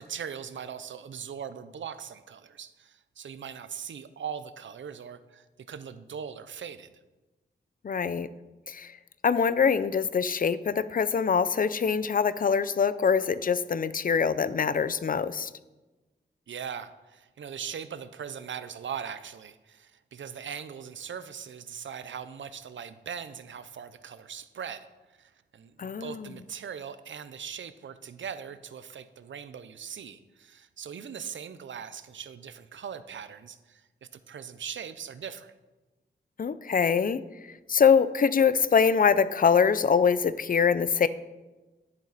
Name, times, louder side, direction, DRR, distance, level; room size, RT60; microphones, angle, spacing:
voice 1, 0.0-6.9 16.5-24.9 25.2-35.5, right 7 dB, 90° right, 12 dB, 0.7 m, -40 dB
voice 2, 7.8-8.3 8.7-8.9 9.2-15.5 25.8-26.3 36.4-37.2 37.7-41.1, left 6 dB, 50° left, 15 dB, 0.5 m, -24 dB
11.0 x 10.5 x 4.1 m, 1.1 s
wide cardioid pair, 135°, 19 cm